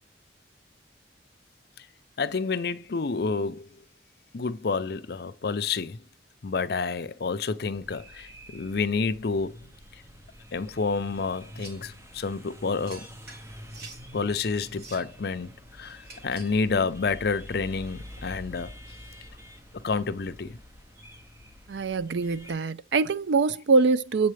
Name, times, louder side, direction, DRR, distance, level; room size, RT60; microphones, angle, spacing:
voice 1, 2.2-3.7 4.3-6.0 6.4-9.6 10.5-13.1 14.1-18.7 19.7-20.6, left 4 dB, 60° left, 0.6 m, -29 dB
sound 1, 7.7-22.5, equal, 15° right, 0.8 m, -47 dB
sound 2, 11.6-11.9 12.8-14.1 14.6-15.2 16.0-16.6, right 3 dB, 60° right, 2.1 m, -47 dB
voice 2, 21.7-24.3, right 4 dB, 80° right, 0.5 m, -24 dB
7.7 x 4.1 x 3.2 m
head